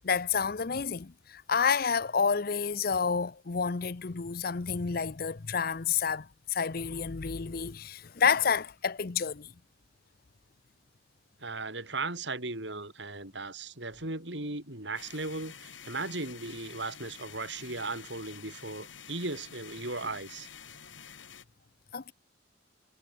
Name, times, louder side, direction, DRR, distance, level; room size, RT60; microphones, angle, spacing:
voice 1, 0.0-9.5 21.9-22.1, left 6 dB, 50° left, 0.7 m, -29 dB
voice 2, 11.4-20.5, right 3 dB, 70° right, 5.4 m, -37 dB
sound 1, 14.9-21.4, left 7 dB, 80° left, 3.5 m, -49 dB
head